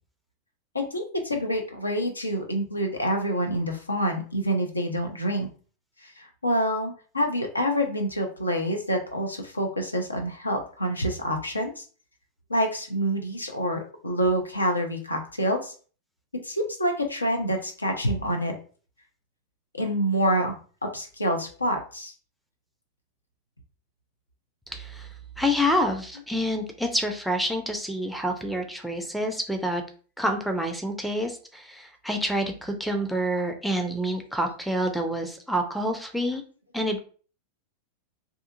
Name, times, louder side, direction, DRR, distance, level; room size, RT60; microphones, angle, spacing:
voice 1, 0.7-5.5 6.0-11.8 12.5-15.7 16.4-18.5 19.7-22.1, equal, 80° left, 3 dB, 0.5 m, -27 dB
voice 2, 24.7-25.1 25.4-29.8 30.2-36.4 36.7-37.0, equal, ahead, 3 dB, 0.4 m, -27 dB
2.6 x 2.4 x 2.5 m, 0.40 s
figure-of-eight pair, 90°, 0 cm